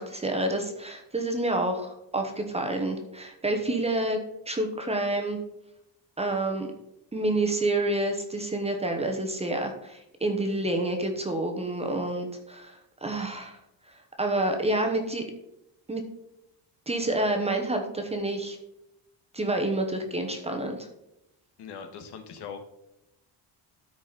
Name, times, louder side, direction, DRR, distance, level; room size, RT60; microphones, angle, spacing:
voice 1, 0.0-4.2 4.5-5.4 6.2-6.7 7.1-13.6 14.2-15.2 15.9-16.0 16.9-18.6 19.3-20.9, right 2 dB, 15° right, 4 dB, 0.9 m, -28 dB
voice 2, 21.6-22.6, left 6 dB, 65° left, 6 dB, 1.5 m, -40 dB
13.0 x 5.0 x 4.0 m, 0.87 s
cardioid pair, 170°, 44 cm